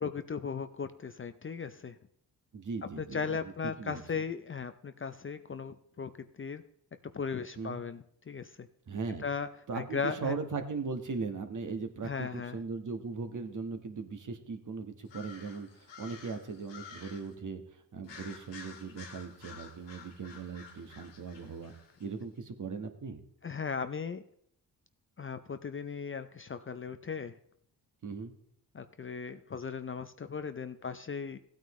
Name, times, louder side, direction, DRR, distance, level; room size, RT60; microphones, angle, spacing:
voice 1, 0.0-2.0 3.0-6.6 7.1-8.7 9.2-9.5 9.7-10.4 12.0-12.6 23.4-24.2 25.2-27.4 28.7-31.4, left 5 dB, 30° left, 10 dB, 0.5 m, -37 dB
voice 2, 2.5-3.5 3.8-4.0 7.6-7.8 8.9-9.2 9.7-21.7 22.0-23.2 28.0-28.3, right 4 dB, 45° right, 7 dB, 1.4 m, -39 dB
sound 1, 15.0-17.3 18.0-22.1, left 5 dB, 85° left, 2.2 m, -51 dB
15.5 x 9.0 x 3.1 m, 0.68 s
cardioid pair, 90°, 43 cm